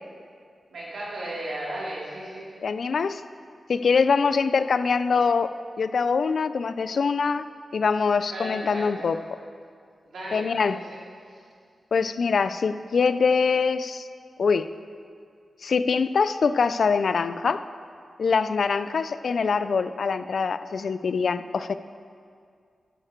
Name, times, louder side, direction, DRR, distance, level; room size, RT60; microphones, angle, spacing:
voice 1, 0.7-2.5 8.3-9.1 10.0-11.0 11.3-11.4, right 1 dB, 90° right, -7 dB, 3.2 m, -35 dB
voice 2, 2.6-3.2 3.7-7.5 7.7-9.2 10.3-10.8 11.9-14.1 14.4-14.7 15.6-17.6 18.2-21.7, left 5 dB, 65° left, 13 dB, 0.3 m, -23 dB
11.0 x 9.9 x 4.5 m, 2.2 s
wide cardioid pair, 130°, 0 cm